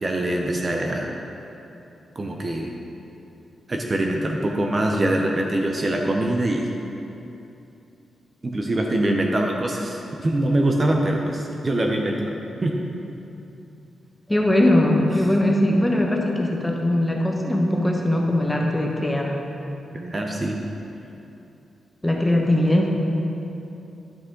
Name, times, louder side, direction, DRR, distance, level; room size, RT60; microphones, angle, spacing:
voice 1, 0.0-1.1 2.2-2.8 3.7-6.7 8.4-12.7 19.9-20.6, right 1 dB, 30° right, 1 dB, 0.7 m, -24 dB
voice 2, 14.3-19.4 22.0-22.9, left 1 dB, 10° left, 0 dB, 1.0 m, -20 dB
11.0 x 6.1 x 3.8 m, 2.9 s
cardioid pair, 115°, 0 cm